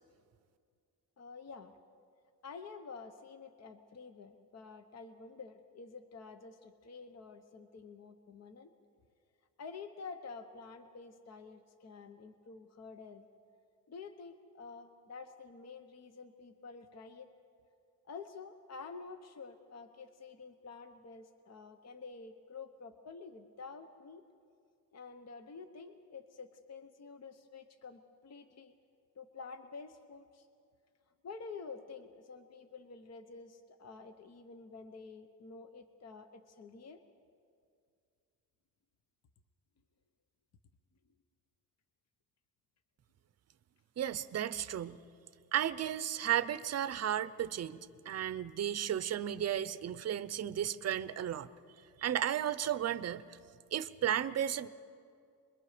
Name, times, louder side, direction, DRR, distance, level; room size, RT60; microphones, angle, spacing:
voice 1, 1.2-1.7 2.4-8.7 9.6-13.3 13.9-17.3 18.1-24.2 24.9-28.7 29.2-30.5 31.2-37.0, left 4 dB, 45° left, 8 dB, 0.9 m, -49 dB
voice 2, 44.0-45.0 45.5-47.8 48.1-51.5 52.0-53.2 53.7-54.7, right 10 dB, 45° right, 14 dB, 0.6 m, -34 dB
27.0 x 22.0 x 5.0 m, 2.3 s
cardioid pair, 135°, 36 cm